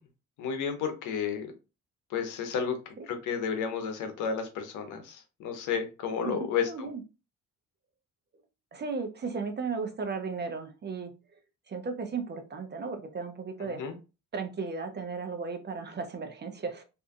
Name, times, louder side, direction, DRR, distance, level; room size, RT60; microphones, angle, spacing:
voice 1, 0.4-1.5 2.1-6.9 13.7-13.9, left 6 dB, 85° left, 6 dB, 0.8 m, -32 dB
voice 2, 6.7-7.0 8.7-11.1 11.7-13.9 14.3-16.8, right 4 dB, 35° right, 6 dB, 0.6 m, -35 dB
2.6 x 2.3 x 2.6 m, 0.29 s
cardioid pair, 90°, 30 cm